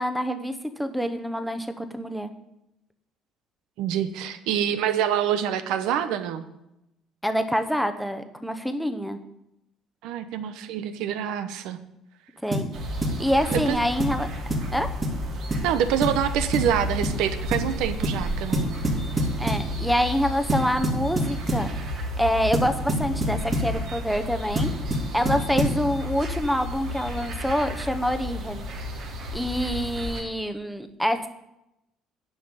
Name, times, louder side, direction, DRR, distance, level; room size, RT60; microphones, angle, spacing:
voice 1, 0.0-2.3 7.2-9.2 12.4-12.7 13.2-14.3 14.7-14.9 19.4-21.7 22.2-24.7 25.1-28.7 29.3-31.3, equal, ahead, 8 dB, 0.9 m, -26 dB
voice 2, 3.8-6.5 10.0-11.8 13.5-13.8 15.6-18.7, right 9 dB, 80° right, 11 dB, 0.9 m, -26 dB
sound 1, 12.5-12.7 13.0-13.2 13.5-13.7 14.0-14.2 14.5-14.7 15.0-15.2 15.5-15.7 16.0-16.2 16.5-16.7 17.0-17.2 17.5-17.7 18.0-18.2 18.5-19.7 20.5-21.7 22.5-23.7 24.6-25.8, right 1 dB, 30° right, 2.6 m, -26 dB
sound 2, 12.7-30.2, left 1 dB, 60° right, 2.9 m, -32 dB
10.0 x 5.7 x 8.1 m, 0.87 s
cardioid pair, 130°, 0 cm